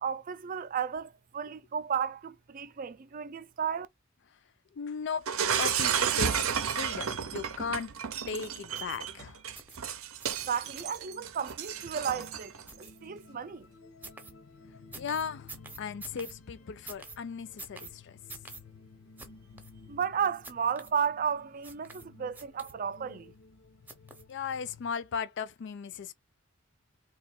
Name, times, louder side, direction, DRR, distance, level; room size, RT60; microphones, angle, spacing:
voice 1, 0.0-3.9 10.5-13.7 19.9-23.3, right 7 dB, 40° right, 0.4 m, -33 dB
voice 2, 4.8-5.3 5.6-7.9 8.3-9.4 15.0-18.2 24.3-26.1, left 6 dB, 55° left, 0.4 m, -36 dB
Shatter, 5.3-12.6, right 8 dB, 85° right, 0.6 m, -32 dB
sound 1, 8.8-9.0 9.5-9.8 10.2-10.4 10.8-11.0 11.5-11.7 12.1-12.3 12.7-13.3 14.0-14.3 14.9-16.3 16.9-17.2 17.6-17.9 18.3-18.6 19.2-19.3 19.6-19.7 20.4-20.9 21.6-22.1 22.3-23.0 23.9-24.3 24.8-24.9, right 3 dB, 10° right, 0.7 m, -47 dB
sound 2, 10.3-24.9, left 4 dB, 75° left, 0.8 m, -55 dB
3.0 x 2.4 x 4.3 m
head